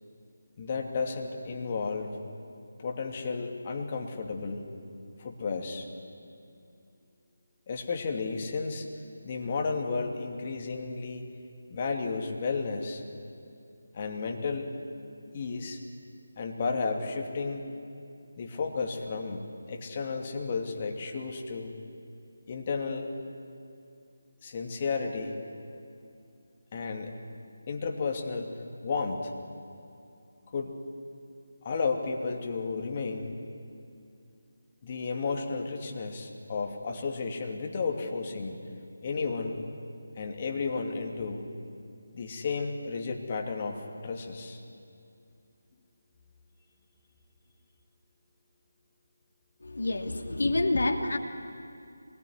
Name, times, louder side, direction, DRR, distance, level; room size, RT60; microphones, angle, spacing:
voice 1, 0.6-2.2 2.8-4.7 5.2-5.9 7.7-8.9 9.2-11.3 11.7-13.0 13.9-14.7 15.3-15.8 16.4-17.6 18.4-19.4 19.7-21.7 22.5-23.1 24.4-25.4 26.7-27.1 27.7-29.3 30.5-30.8 31.6-33.3 34.8-38.6 39.0-39.6 40.2-41.4 42.1-44.6, left 4 dB, 30° left, 2 dB, 2.8 m, -33 dB
voice 2, 49.6-51.2, left 2 dB, 65° left, 5 dB, 2.7 m, -27 dB
25.5 x 22.0 x 9.9 m, 2.5 s
figure-of-eight pair, 155°, 0 cm